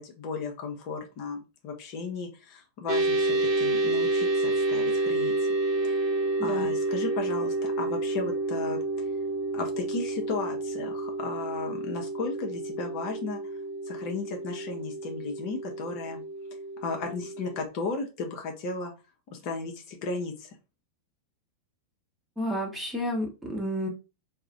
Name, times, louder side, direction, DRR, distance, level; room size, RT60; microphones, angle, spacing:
voice 1, 0.0-5.3 5.8-6.0 6.4-8.8 9.5-13.4 13.9-16.2 16.8-18.9 19.3-20.6, left 4 dB, 45° left, 3 dB, 0.6 m, -35 dB
sound 1, 2.9-17.6, right 2 dB, 40° right, 0.5 m, -29 dB
voice 2, 6.4-6.7 22.4-23.9, equal, 10° right, -1 dB, 0.9 m, -31 dB
2.4 x 2.0 x 3.8 m, 0.30 s
figure-of-eight pair, 90°, 0 cm